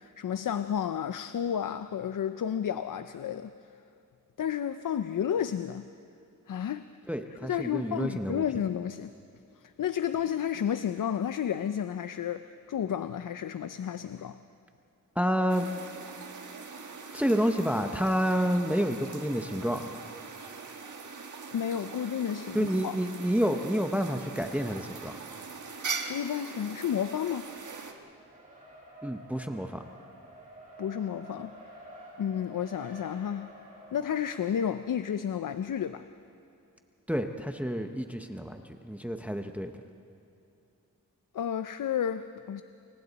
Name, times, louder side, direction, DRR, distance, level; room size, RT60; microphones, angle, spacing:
voice 1, 0.0-3.5 4.4-5.8 6.5-6.9 7.4-9.1 9.8-14.4 21.5-23.0 26.1-27.5 30.8-31.5 32.2-33.5 33.9-36.1 41.3-42.6, left 9 dB, 70° left, 11 dB, 0.6 m, -31 dB
voice 2, 7.1-8.4 15.2-15.7 17.1-19.8 22.5-25.1 29.0-29.8 37.1-39.7, equal, 5° right, 6 dB, 0.7 m, -29 dB
sound 1, 15.5-27.9, right 4 dB, 65° right, 1.5 m, -41 dB
Race car auto racing, 27.2-36.2, right 1 dB, 25° right, 5.0 m, -51 dB
28.5 x 24.5 x 4.1 m, 2.6 s
wide cardioid pair, 165°, 33 cm